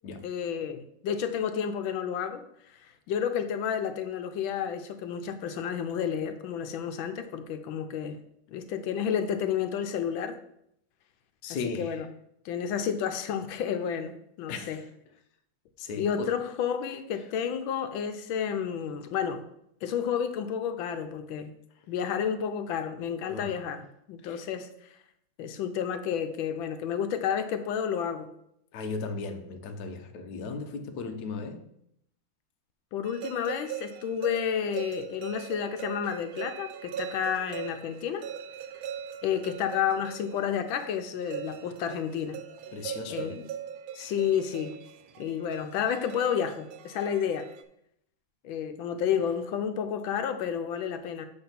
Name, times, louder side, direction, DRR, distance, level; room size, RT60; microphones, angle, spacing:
voice 1, 0.2-2.4 2.8-8.2 8.5-10.4 11.6-12.1 12.4-14.8 16.0-19.4 19.8-21.5 21.9-23.8 24.1-24.7 25.4-28.3 32.9-38.2 39.2-42.4 43.1-43.5 43.9-44.7 45.2-47.5 48.4-51.3, left 8 dB, 80° left, 1.4 m, -31 dB
voice 2, 11.4-12.0 14.5-14.9 15.8-16.4 23.3-23.6 24.2-24.5 28.7-31.7 42.7-43.4, left 4 dB, 65° left, 1.1 m, -37 dB
sound 1, 33.1-47.6, right 9 dB, 85° right, 1.4 m, -41 dB
7.8 x 3.6 x 5.7 m
omnidirectional pair, 2.1 m